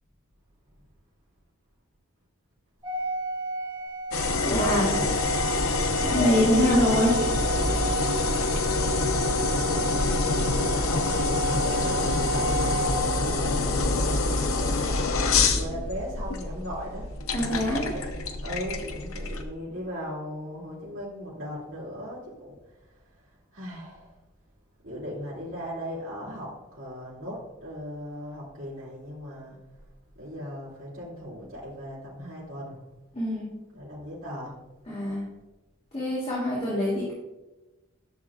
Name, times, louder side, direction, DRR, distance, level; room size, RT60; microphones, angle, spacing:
Organ, 2.8-13.7, right 2 dB, 20° right, 1.7 m, -32 dB
sound 1, 4.1-19.4, left 3 dB, 90° left, 0.8 m, -26 dB
voice 1, 4.4-4.9 6.0-7.2 17.3-17.9 33.1-33.5 34.9-35.2 35.9-37.1, equal, 30° left, -7 dB, 2.2 m, -24 dB
voice 2, 9.1-14.9 15.4-17.1 17.7-18.1 18.4-22.6 23.5-24.1 24.8-29.6 30.2-32.8 33.7-34.6, equal, 65° right, -8 dB, 2.4 m, -38 dB
12.0 x 6.6 x 2.4 m, 1.1 s
head